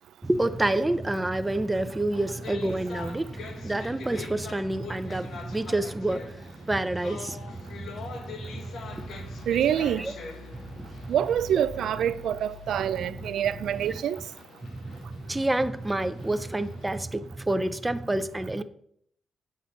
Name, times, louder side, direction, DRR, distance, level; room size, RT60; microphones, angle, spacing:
voice 1, 0.2-9.5 10.0-10.1 10.5-11.1 12.8-13.3 14.6-18.6, right 1 dB, 10° right, 0.5 m, -29 dB
sound 1, 2.1-17.0, left 4 dB, 70° left, 1.4 m, -45 dB
sound 2, 8.8-13.8, left 3 dB, 90° left, 4.2 m, -47 dB
voice 2, 9.5-10.1 11.1-14.2, right 9 dB, 80° right, 0.3 m, -26 dB
8.5 x 6.6 x 5.1 m
wide cardioid pair, 145°, 0 cm